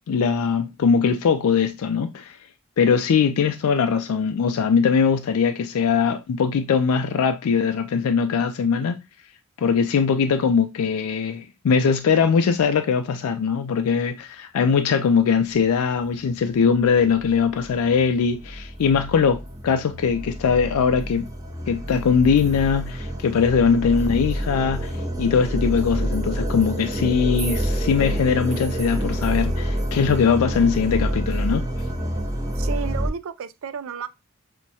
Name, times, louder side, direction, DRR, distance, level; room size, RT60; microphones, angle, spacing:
voice 1, 0.1-2.4 2.8-9.0 9.6-21.3 21.7-24.9 25.2-31.7, left 6 dB, 80° left, 0.3 m, -21 dB
sound 1, 16.2-16.3 16.7-33.1, equal, 15° right, 0.6 m, -28 dB
voice 2, 32.6-34.1, right 7 dB, 65° right, 0.3 m, -32 dB
6.0 x 2.1 x 2.7 m
head